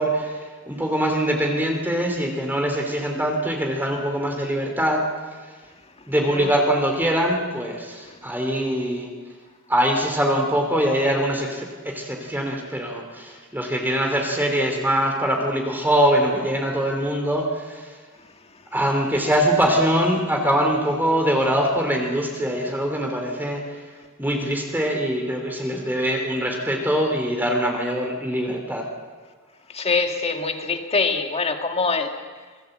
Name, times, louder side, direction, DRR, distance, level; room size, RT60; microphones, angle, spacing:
voice 1, 0.0-5.0 6.1-9.1 9.7-17.9 18.7-23.8 24.2-28.9, equal, 10° right, 2 dB, 3.1 m, -23 dB
voice 2, 29.7-32.2, left 4 dB, 30° left, 5 dB, 2.1 m, -24 dB
27.5 x 21.0 x 7.9 m, 1.5 s
head